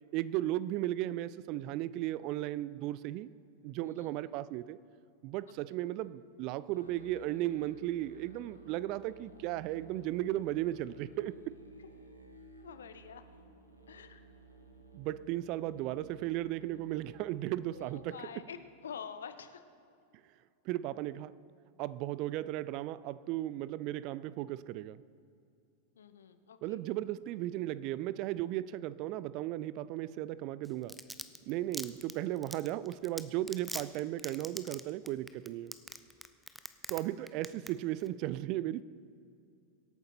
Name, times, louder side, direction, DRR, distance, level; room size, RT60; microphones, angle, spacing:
voice 1, 0.0-3.3 3.6-4.8 5.2-11.6 14.9-18.2 20.7-21.4 21.8-25.0 26.6-31.0 31.5-35.7 36.9-38.8, right 14 dB, 40° right, 0.4 m, -35 dB
voice 2, 3.8-4.1 5.7-5.8 12.6-13.2 13.9-14.2 17.7-19.6 26.0-26.8, left 7 dB, 65° left, 0.8 m, -47 dB
Musical instrument, 6.7-18.3, right 3 dB, 85° right, 1.4 m, -56 dB
Domestic sounds home sounds, 30.6-37.0 37.3-37.7 38.0-38.1, equal, ahead, 0.6 m, -41 dB
23.5 x 8.9 x 4.3 m
figure-of-eight pair, 90°, 0 cm